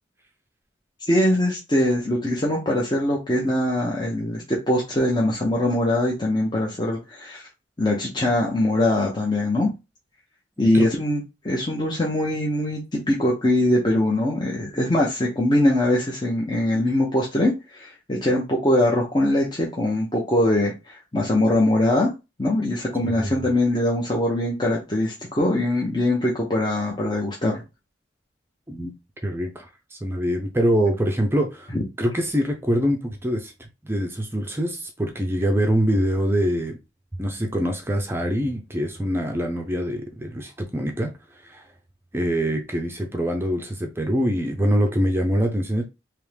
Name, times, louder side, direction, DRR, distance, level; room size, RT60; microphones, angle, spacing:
voice 1, 1.1-7.4 7.8-9.7 10.6-22.1 22.4-27.6, left 1 dB, 25° left, 0.8 m, -22 dB
voice 2, 10.6-10.9 23.0-23.5 28.7-28.9 29.2-31.7 32.0-36.8 37.2-41.1 41.4-41.7 42.1-45.8, equal, 10° right, 0.6 m, -24 dB
3.5 x 3.0 x 3.3 m
head